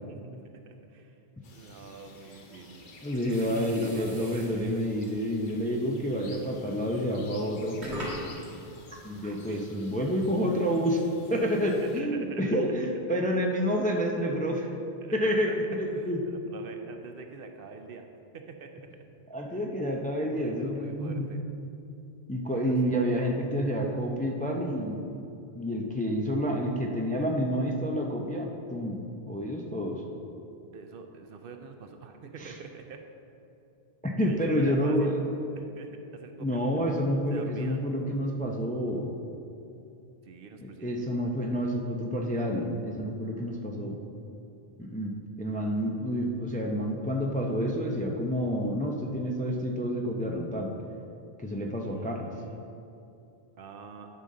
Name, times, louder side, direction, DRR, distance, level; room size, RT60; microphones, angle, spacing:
voice 1, 0.1-1.2 1.5-4.8 9.2-9.7 11.7-12.6 15.0-15.5 15.9-18.1 18.3-18.9 19.5-19.6 20.3-21.4 22.5-23.0 30.7-33.0 34.3-35.2 35.6-37.0 37.3-37.8 40.2-41.1 51.9-52.6 53.6-54.1, right 5 dB, 65° right, 5 dB, 0.7 m, -45 dB
sound 1, 1.4-12.0, left 3 dB, 55° left, 0.8 m, -51 dB
voice 2, 3.0-7.8 8.9-11.0 11.3-14.7 15.1-16.2 19.3-21.3 22.3-25.1 25.6-30.0 32.4-32.5 34.0-35.2 36.4-39.1 40.8-44.0 44.8-50.7 51.4-52.3, equal, 10° left, 1 dB, 0.4 m, -29 dB
sound 2, 3.3-5.2 6.1-6.4 7.0-7.1 7.7-10.9, equal, 90° right, 2.1 m, -42 dB
10.5 x 5.5 x 3.7 m, 2.7 s
omnidirectional pair, 1.1 m